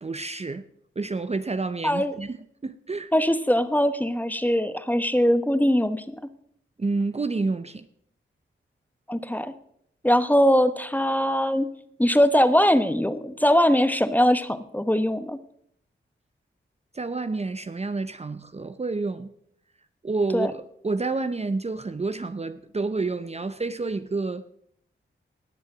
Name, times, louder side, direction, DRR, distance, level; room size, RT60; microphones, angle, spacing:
voice 1, 0.0-0.6 1.0-3.1 6.8-7.9 16.9-19.3 20.0-24.4, right 3 dB, 30° right, 0.7 m, -29 dB
voice 2, 1.8-2.1 3.1-6.0 9.1-9.5 10.0-11.7 12.0-15.4 20.3-20.5, equal, 10° left, 1.1 m, -21 dB
18.5 x 7.2 x 6.1 m
cardioid pair, 50°, 21 cm